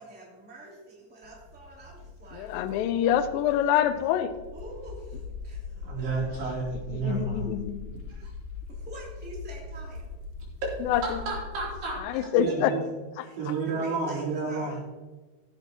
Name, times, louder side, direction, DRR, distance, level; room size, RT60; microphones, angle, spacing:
voice 1, 0.0-2.5 4.5-6.2 7.1-7.2 8.7-10.1 12.1-12.3 13.2-13.4 13.6-14.8, right 1 dB, 5° right, -4 dB, 1.8 m, -46 dB
sound 1, 1.2-12.0, left 4 dB, 65° left, 2.6 m, -41 dB
voice 2, 2.3-4.3 7.0-7.8 10.8-11.2 12.0-12.7 13.2-13.3, left 10 dB, 90° left, 10 dB, 2.0 m, -26 dB
voice 3, 5.8-7.5 8.2-8.3 11.0-12.0 12.4-12.8 13.4-14.7, right 4 dB, 80° right, -5 dB, 5.2 m, -31 dB
15.5 x 8.0 x 2.9 m, 1.2 s
omnidirectional pair, 4.7 m